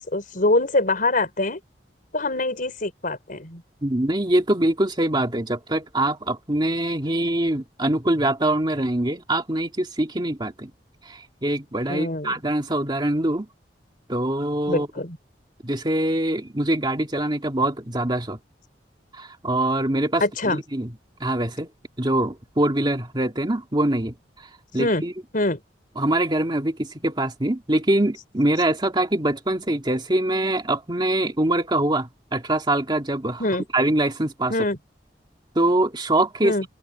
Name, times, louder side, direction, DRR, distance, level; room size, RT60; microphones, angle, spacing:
voice 1, 0.1-1.6 2.1-3.6 11.9-12.4 14.7-15.2 20.2-20.6 24.8-25.0 25.3-25.6 33.4-33.6 34.5-34.8 36.4-36.7, left 2 dB, 50° left, 5.2 m, -24 dB
voice 2, 3.8-10.7 11.1-13.5 14.1-14.9 15.6-18.4 19.1-20.9 21.2-21.7 22.0-24.1 24.7-25.1 26.0-33.4 33.7-34.5 35.6-36.5, right 1 dB, 25° right, 2.2 m, -23 dB
open air
head